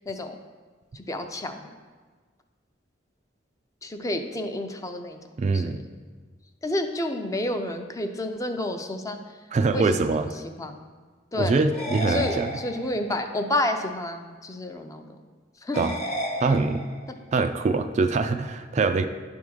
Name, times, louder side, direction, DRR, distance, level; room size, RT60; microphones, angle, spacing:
voice 1, 0.1-0.4 0.9-1.7 3.8-5.2 5.5-5.8 6.6-9.2 9.7-10.3 10.6-10.8 11.3-11.6 12.1-15.0 15.6-15.9, left 1 dB, 20° left, 5 dB, 0.5 m, -30 dB
voice 2, 5.4-5.8 9.5-10.3 11.3-12.5 15.8-15.9 16.4-16.8 17.3-19.1, right 3 dB, 35° right, 8 dB, 0.3 m, -23 dB
sound 1, 11.7-13.1 15.7-17.1, equal, 35° left, 1.1 m, -33 dB
10.0 x 3.5 x 6.3 m, 1.4 s
head